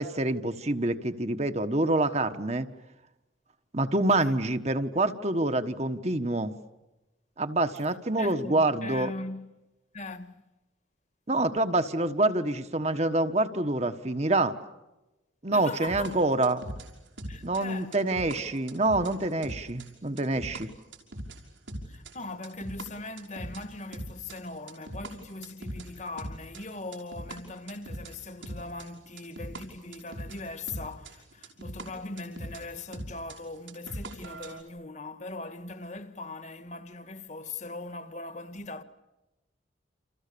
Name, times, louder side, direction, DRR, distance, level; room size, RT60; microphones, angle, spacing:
voice 1, 0.0-2.7 3.7-6.5 7.4-9.1 11.3-14.6 15.4-16.6 17.4-20.7, right 2 dB, 35° right, 1.4 m, -26 dB
voice 2, 8.2-9.5 9.9-10.4 15.5-16.1 17.3-18.0 21.9-38.8, left 2 dB, 40° left, 1.7 m, -40 dB
sound 1, 15.9-20.6 20.9-23.6 23.9-25.1 25.4-27.4 27.7-29.6 29.9-32.6 32.9-34.6, right 1 dB, 90° right, 5.7 m, -40 dB
29.5 x 28.5 x 7.0 m
head